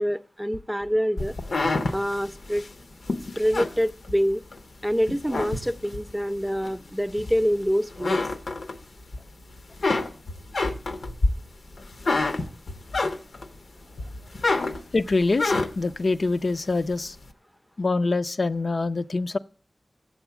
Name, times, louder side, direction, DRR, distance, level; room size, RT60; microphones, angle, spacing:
voice 1, 0.0-1.3 1.9-2.7 3.4-4.4 4.8-8.2, equal, 5° right, 13 dB, 0.5 m, -26 dB
sound 1, 1.2-4.6 5.0-6.1 6.6-7.6 7.9-9.2 9.5-13.5 14.0-15.9, left 2 dB, 90° left, 0.8 m, -27 dB
voice 2, 14.9-17.1 17.8-19.4, left 3 dB, 65° left, 10 dB, 0.4 m, -25 dB
7.9 x 7.1 x 6.8 m, 0.42 s
wide cardioid pair, 50°, 0 cm